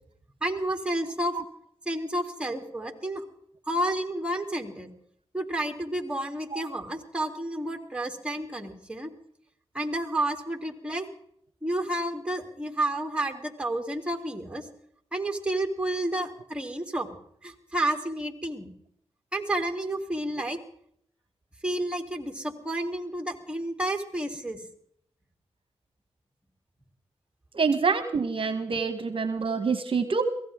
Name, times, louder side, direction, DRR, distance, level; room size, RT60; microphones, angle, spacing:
voice 1, 0.4-1.3 1.8-3.2 3.7-4.9 5.3-9.1 9.7-11.1 11.6-14.6 15.1-17.1 17.4-18.7 19.3-20.6 21.6-24.6, right 1 dB, 10° right, 3 dB, 3.1 m, -30 dB
voice 2, 27.5-30.2, right 5 dB, 55° right, 10 dB, 1.2 m, -26 dB
23.0 x 16.5 x 3.7 m, 0.67 s
cardioid pair, 55°, 11 cm